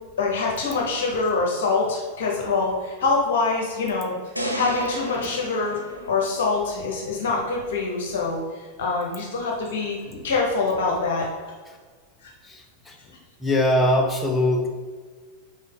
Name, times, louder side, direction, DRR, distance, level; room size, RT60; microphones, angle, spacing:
voice 1, 0.2-4.1 4.5-5.8 6.1-11.3 12.2-12.3, left 3 dB, 60° left, -1 dB, 1.0 m, -25 dB
sound 1, 4.4-6.7, equal, 90° left, 0.7 m, -31 dB
voice 2, 12.5-12.9 13.4-14.7, left 1 dB, 10° left, 2 dB, 0.9 m, -22 dB
5.4 x 4.6 x 3.9 m, 1.5 s
figure-of-eight pair, 90°, 0 cm